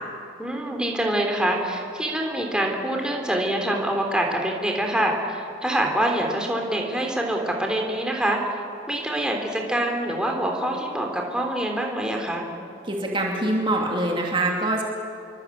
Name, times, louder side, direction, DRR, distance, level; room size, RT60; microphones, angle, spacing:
voice 1, 0.4-8.4 8.9-12.5, right 1 dB, 5° right, 1 dB, 3.4 m, -25 dB
voice 2, 12.9-14.8, right 1 dB, 25° right, 0 dB, 2.8 m, -24 dB
27.5 x 23.5 x 8.6 m, 2.5 s
head